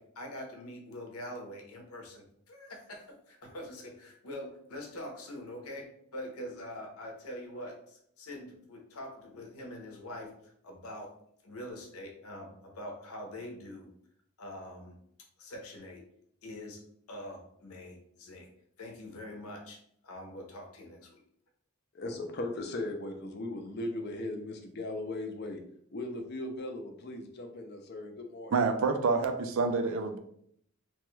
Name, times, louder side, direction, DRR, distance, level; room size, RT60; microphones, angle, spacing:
voice 1, 0.0-11.1 11.4-13.9 14.4-15.0 15.4-16.1 16.4-16.8 17.1-18.5 18.8-21.1, left 1 dB, 85° left, 2 dB, 0.7 m, -44 dB
voice 2, 21.9-25.6 25.9-28.5, left 2 dB, 45° left, 5 dB, 0.4 m, -38 dB
voice 3, 28.5-30.2, right 4 dB, 65° right, 7 dB, 0.4 m, -27 dB
3.0 x 2.2 x 3.1 m, 0.68 s
head